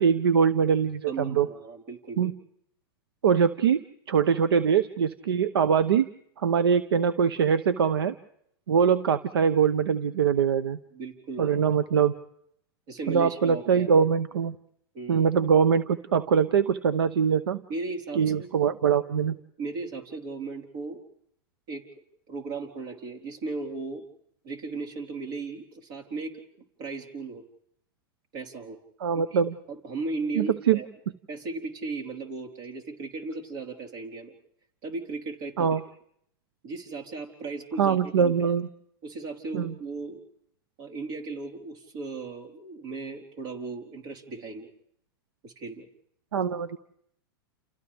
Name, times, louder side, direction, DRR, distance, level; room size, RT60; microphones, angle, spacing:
voice 1, 0.0-1.5 2.2-2.3 3.2-3.8 4.1-6.1 6.4-8.1 8.7-10.8 11.4-12.1 13.1-14.5 15.1-17.6 18.2-19.4 29.0-29.5 30.3-30.8 35.6-35.8 37.8-38.7 39.5-39.7 46.3-46.8, right 7 dB, 90° right, 14 dB, 0.8 m, -23 dB
voice 2, 1.1-2.3 10.9-11.6 12.9-13.9 14.9-15.3 17.7-18.5 19.6-21.0 21.7-21.8 22.3-24.0 24.4-26.4 26.8-27.4 28.3-28.8 29.3-29.4 29.7-30.9 31.3-34.3 34.8-35.8 36.6-38.6 39.0-40.2 40.8-44.7 45.4-45.9, right 3 dB, 60° right, 2 dB, 4.3 m, -36 dB
29.5 x 29.0 x 3.5 m, 0.71 s
hypercardioid pair, 110°, 12 cm